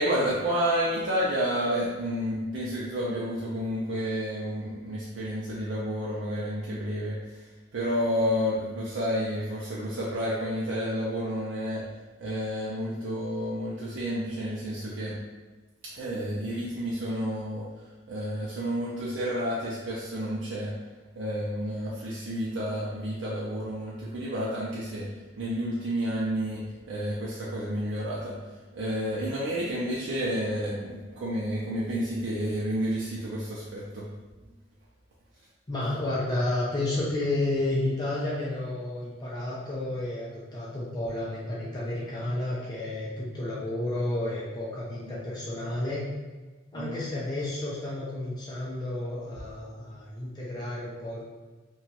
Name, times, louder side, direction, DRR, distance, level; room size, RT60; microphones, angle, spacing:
voice 1, 0.0-11.8 12.2-15.2 15.8-17.7 18.1-20.7 21.2-25.1 25.4-28.4 28.7-34.1 46.7-47.0, equal, 75° right, -7 dB, 0.4 m, -30 dB
voice 2, 35.7-46.0 46.7-51.2, left 1 dB, 20° left, -7 dB, 0.4 m, -31 dB
2.9 x 2.3 x 2.7 m, 1.3 s
head